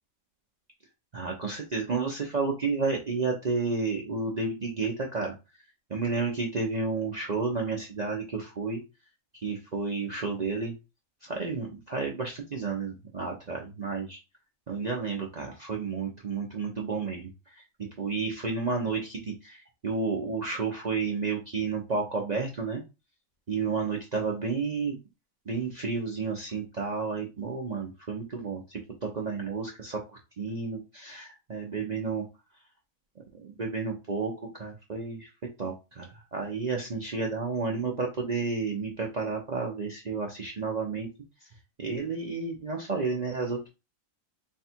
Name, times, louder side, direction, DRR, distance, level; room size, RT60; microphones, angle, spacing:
voice 1, 1.1-5.3 5.9-8.8 9.4-10.7 11.3-14.2 14.7-17.3 18.0-22.8 23.5-25.0 25.5-32.2 33.3-35.3 35.6-41.1 41.8-43.7, right 4 dB, 45° right, -1 dB, 0.6 m, -31 dB
3.6 x 2.3 x 4.2 m, 0.27 s
omnidirectional pair, 1.4 m